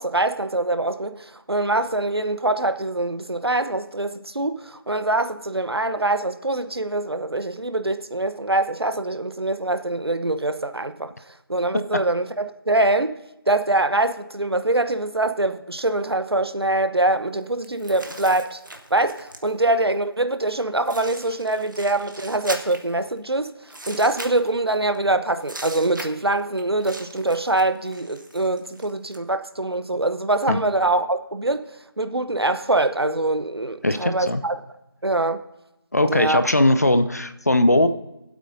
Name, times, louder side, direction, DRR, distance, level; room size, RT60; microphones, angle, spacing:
voice 1, 0.0-11.1 11.5-13.1 13.5-18.6 18.9-31.6 32.0-34.6 35.0-35.4 36.1-36.4, right 2 dB, 85° right, 0.9 m, -24 dB
sound 1, 17.6-19.7 20.5-20.6 20.8-23.2 23.7-25.0 25.4-29.2, right 1 dB, 55° right, 1.5 m, -39 dB
voice 2, 33.8-34.4 35.9-37.9, left 1 dB, 40° left, 0.6 m, -19 dB
23.5 x 8.2 x 2.7 m
figure-of-eight pair, 175°, 13 cm